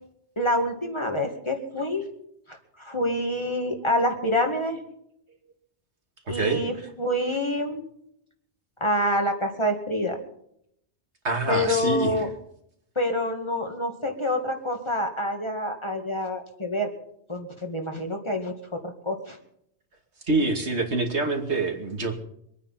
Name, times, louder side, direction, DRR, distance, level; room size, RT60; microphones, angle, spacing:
voice 1, 0.4-2.1 2.5-4.8 6.3-7.8 8.8-10.2 11.5-12.3 13.0-16.9 17.3-19.4, left 1 dB, 25° left, 3 dB, 2.2 m, -27 dB
voice 2, 6.3-6.6 11.2-12.3 20.3-22.1, right 3 dB, 75° right, 3 dB, 2.7 m, -26 dB
24.5 x 9.6 x 5.8 m, 0.72 s
omnidirectional pair, 1.2 m